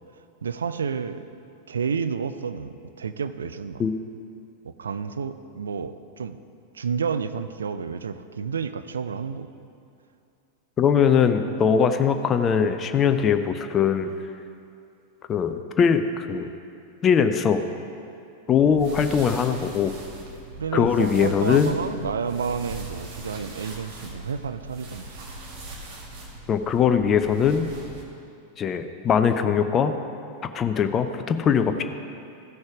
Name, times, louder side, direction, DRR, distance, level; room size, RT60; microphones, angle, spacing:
voice 1, 0.4-1.2 1.7-3.8 4.6-6.4 6.7-9.5 18.6-18.8 20.6-25.1, right 6 dB, 70° right, 11 dB, 0.4 m, -30 dB
voice 2, 10.8-14.1 15.3-16.5 17.0-17.6 18.5-19.9 20.7-21.7 26.5-27.7 28.6-30.0 30.5-31.8, left 7 dB, 25° left, 8 dB, 0.6 m, -21 dB
sound 1, 18.6-28.0, right 1 dB, 50° right, 1.8 m, -40 dB
15.0 x 6.3 x 4.8 m, 2.6 s
figure-of-eight pair, 90°, 0 cm